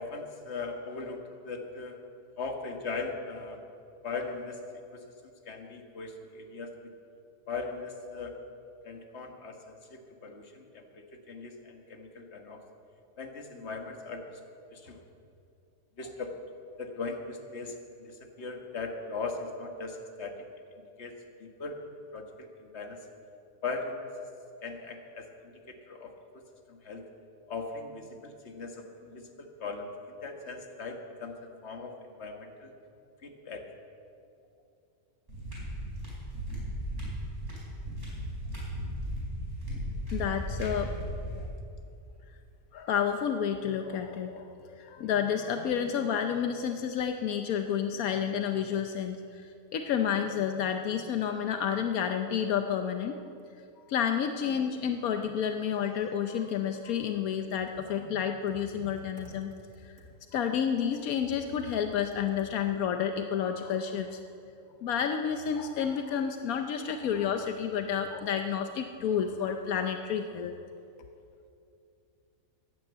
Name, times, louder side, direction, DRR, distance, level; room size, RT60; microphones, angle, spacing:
voice 1, 0.0-2.0 2.4-3.6 4.0-4.6 4.9-5.0 5.5-6.7 7.5-8.3 8.8-12.6 13.2-14.4 14.7-15.0 16.0-16.4 16.8-20.3 20.8-21.1 21.4-21.8 22.1-23.1 23.6-24.1 24.6-26.1 26.7-27.1 27.5-31.4 31.6-32.7 33.2-33.6, left 4 dB, 50° left, 4 dB, 1.7 m, -39 dB
sound 1, 35.3-41.4, equal, 55° right, 5.2 m, -36 dB
voice 2, 40.1-41.5 42.7-53.2 53.9-59.5 59.8-59.9 60.3-64.2 64.8-70.5, left 8 dB, 80° left, 6 dB, 1.2 m, -30 dB
Computer keyboard, 57.5-62.9, left 1 dB, 75° right, 2.5 m, -52 dB
14.5 x 10.0 x 8.0 m, 2.6 s
omnidirectional pair, 1.5 m